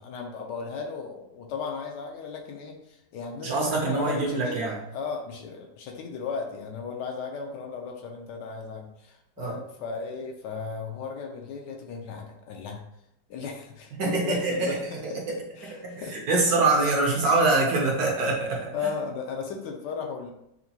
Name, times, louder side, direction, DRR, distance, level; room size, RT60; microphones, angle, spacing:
voice 1, 0.0-12.8 13.3-16.2 18.7-20.3, left 5 dB, 75° left, 2 dB, 1.2 m, -36 dB
voice 2, 3.4-4.8 9.4-9.6 14.0-14.8 15.0-15.4 15.8-18.7, right 3 dB, 65° right, -2 dB, 1.1 m, -24 dB
5.7 x 2.2 x 2.8 m, 0.81 s
omnidirectional pair, 2.0 m